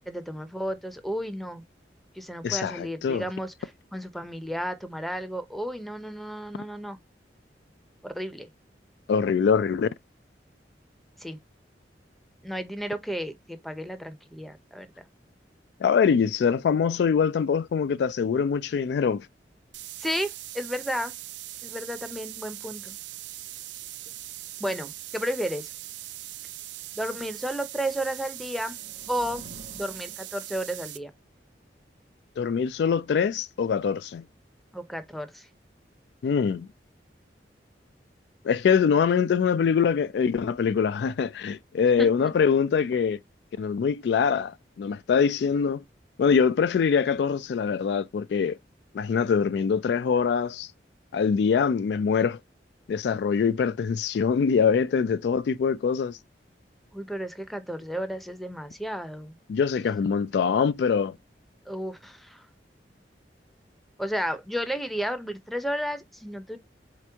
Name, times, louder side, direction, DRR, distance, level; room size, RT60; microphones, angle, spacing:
voice 1, 0.1-1.6 2.1-7.0 8.0-8.5 11.2-11.4 12.4-14.9 20.0-21.1 21.6-23.0 24.6-25.7 26.9-28.8 29.1-29.5 29.7-31.1 34.7-35.5 42.0-42.3 56.9-59.4 61.7-62.5 64.0-66.6, equal, ahead, 0.6 m, -33 dB
voice 2, 2.4-3.3 9.1-9.9 15.8-19.3 32.4-34.2 36.2-36.7 38.4-43.2 43.6-45.8 46.2-48.6 48.9-50.7 51.1-52.4 52.9-56.2 59.5-61.2, left 6 dB, 65° left, 0.3 m, -24 dB
sound 1, 19.7-31.0, right 14 dB, 85° right, 0.5 m, -41 dB
sound 2, 28.3-30.9, right 1 dB, 60° right, 0.8 m, -50 dB
4.2 x 3.0 x 3.4 m
head